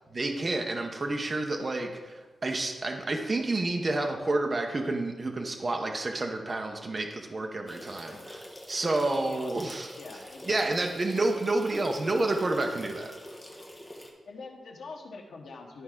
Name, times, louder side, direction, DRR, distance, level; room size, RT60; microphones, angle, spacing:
voice 1, 0.1-9.9 10.4-13.1, right 2 dB, 30° right, 2 dB, 0.9 m, -29 dB
sound 1, 7.7-14.1, left 1 dB, 15° left, 1.2 m, -46 dB
voice 2, 8.8-10.8 11.1-11.3 14.2-15.8, left 3 dB, 90° left, 1 dB, 1.3 m, -45 dB
12.0 x 4.7 x 3.8 m, 1.2 s
wide cardioid pair, 170°, 0 cm